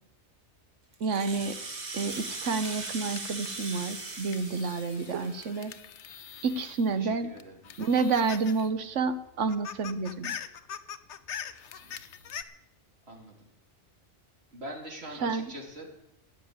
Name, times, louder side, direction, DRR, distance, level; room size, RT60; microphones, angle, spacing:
Rattle (instrument), 0.9-5.7, right 3 dB, 35° right, 1.5 m, -39 dB
voice 1, 1.0-1.6 1.9-5.7 6.4-7.3 7.8-10.3 15.2-15.5, right 4 dB, 80° right, 11 dB, 1.3 m, -29 dB
sound 1, 2.1-7.0 7.4-8.7 9.0-9.1 9.4-12.4, left 8 dB, 75° left, 1.0 m, -43 dB
voice 2, 6.9-7.8 11.8-12.0 13.0-13.5 14.5-15.9, right 1 dB, 60° right, 0 dB, 3.2 m, -44 dB
15.5 x 6.5 x 9.5 m, 0.86 s
omnidirectional pair, 1.2 m